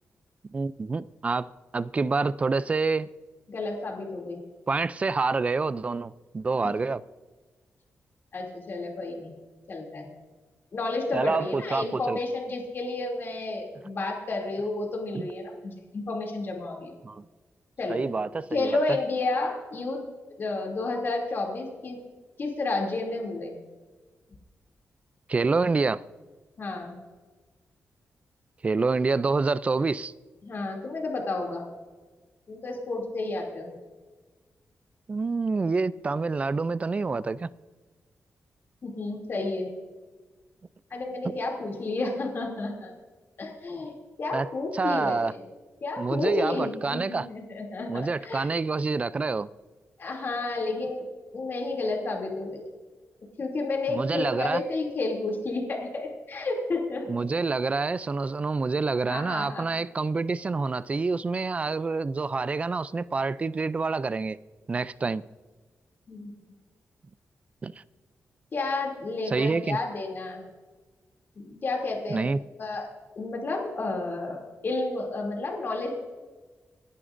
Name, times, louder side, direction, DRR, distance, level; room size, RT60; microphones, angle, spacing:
voice 1, 0.5-3.1 4.7-7.0 11.1-12.2 17.0-17.2 17.9-18.8 25.3-26.0 28.6-30.1 35.1-37.5 44.3-44.5 44.7-45.3 46.0-47.3 47.9-49.5 53.9-54.6 57.1-64.4 64.7-65.2 67.6-67.7 69.3-69.8 72.1-72.4, right 4 dB, 25° right, 0.3 m, -27 dB
voice 2, 3.5-4.4 6.6-6.7 8.3-9.3 9.7-10.1 10.7-16.9 17.8-18.0 18.5-20.0 20.4-22.0 22.4-23.6 26.6-27.0 30.4-31.7 32.5-33.7 38.8-39.7 40.9-42.9 43.4-43.9 44.2-45.4 45.8-48.5 50.0-51.0 51.3-52.6 53.4-57.0 59.1-59.7 66.1-66.3 68.5-70.5 71.4-72.3 72.6-72.9 73.2-75.9, left 2 dB, 45° left, 2.7 m, -31 dB
27.0 x 11.0 x 2.6 m
wide cardioid pair, 150°, 5 cm